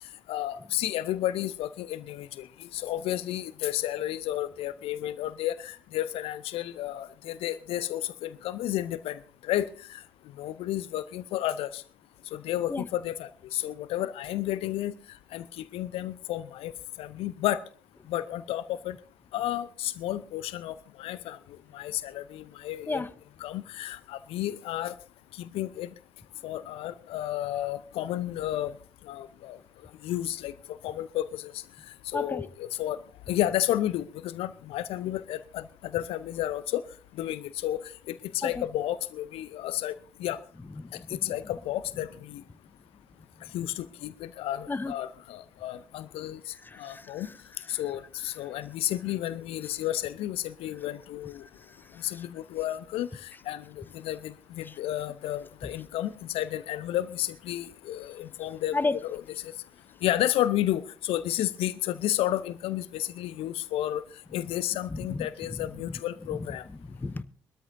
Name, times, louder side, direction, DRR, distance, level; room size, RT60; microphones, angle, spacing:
voice 1, 0.3-2.3 2.7-9.2 9.5-10.0 10.4-11.8 12.3-14.9 15.3-15.4 15.7-16.7 17.0-17.6 18.1-18.9 19.3-21.4 21.7-23.0 23.4-24.9 25.4-25.9 26.4-28.7 29.1-29.6 30.0-30.5 30.8-31.5 32.1-33.0 33.3-35.6 35.9-36.8 37.2-37.8 38.3-39.9 40.2-40.4 41.2-42.4 43.5-46.4 46.8-47.3 47.7-51.4 52.0-53.1 53.5-53.6 54.0-58.8 59.0-59.2 60.0-64.0 64.3-66.6, left 13 dB, 65° left, 0.6 m, -31 dB
voice 2, 40.8-41.3 44.7-44.9 46.6-47.4 47.7-47.8 51.9-52.3 54.6-54.8 58.7-59.0 64.9-65.3 65.9-66.0 66.4-67.2, left 3 dB, 20° left, 0.7 m, -33 dB
22.5 x 13.0 x 2.7 m
figure-of-eight pair, 45°, 11 cm